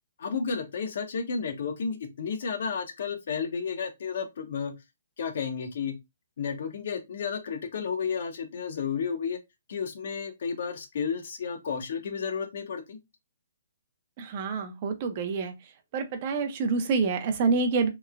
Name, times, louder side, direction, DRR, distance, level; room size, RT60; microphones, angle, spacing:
voice 1, 0.2-4.7 5.2-5.9 6.4-9.4 9.7-13.0, left 6 dB, 55° left, 0.7 m, -32 dB
voice 2, 14.2-15.5 15.9-17.9, right 4 dB, 30° right, 0.5 m, -27 dB
2.9 x 2.1 x 2.4 m
hypercardioid pair, 165°, 0 cm